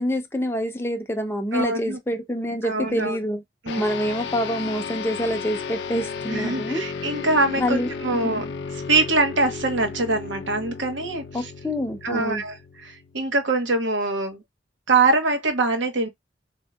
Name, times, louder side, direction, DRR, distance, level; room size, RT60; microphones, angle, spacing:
voice 1, 0.0-3.4 3.8-6.8 7.6-7.9 8.2-8.5 11.3-12.4, equal, 10° left, 0.5 m, -26 dB
voice 2, 1.5-2.0 2.6-3.2 3.6-3.9 6.3-8.4 8.9-11.3 12.0-14.4 14.9-16.1, right 3 dB, 80° right, 1.0 m, -23 dB
sound 1, 3.7-13.4, left 5 dB, 65° left, 0.4 m, -34 dB
4.1 x 2.7 x 2.3 m
head